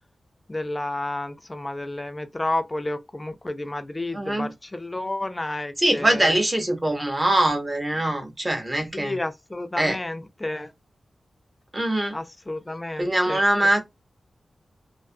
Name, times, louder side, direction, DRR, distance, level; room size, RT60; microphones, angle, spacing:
voice 1, 0.5-6.3 8.9-10.7 12.1-13.4, left 2 dB, 20° left, 0.3 m, -31 dB
voice 2, 4.1-4.5 5.8-9.2 9.8-10.0 11.7-12.2 13.0-13.8, right 1 dB, 20° right, 0.7 m, -23 dB
2.5 x 2.3 x 2.5 m
wide cardioid pair, 140°, 0 cm